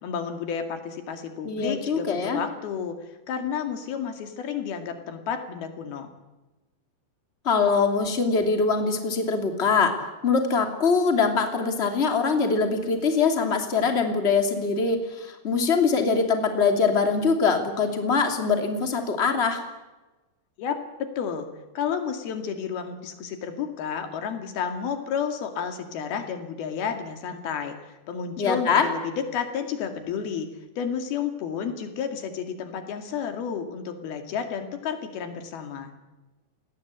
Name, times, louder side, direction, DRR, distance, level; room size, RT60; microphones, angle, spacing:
voice 1, 0.0-3.0 3.3-6.1 20.6-21.5 21.8-30.5 30.8-35.9, left 7 dB, 90° left, 6 dB, 4.2 m, -31 dB
voice 2, 1.4-2.4 7.4-19.6 28.4-28.9, left 4 dB, 20° left, 5 dB, 2.7 m, -23 dB
28.5 x 19.5 x 8.3 m, 1.1 s
omnidirectional pair, 4.2 m